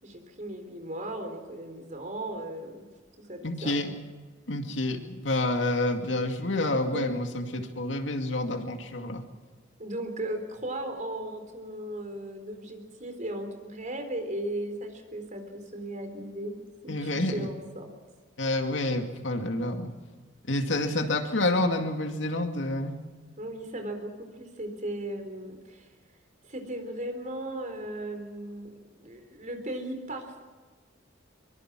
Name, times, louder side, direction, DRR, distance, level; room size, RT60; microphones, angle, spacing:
voice 1, 0.0-2.9 3.2-3.7 6.9-7.1 9.8-16.5 16.8-17.9 23.4-25.9 26.4-30.4, right 1 dB, 40° right, 5 dB, 3.9 m, -36 dB
voice 2, 3.4-3.9 4.5-9.2 16.9-17.5 18.4-19.9 20.5-23.0, left 2 dB, 75° left, 5 dB, 2.2 m, -28 dB
23.5 x 23.5 x 6.2 m, 1.4 s
head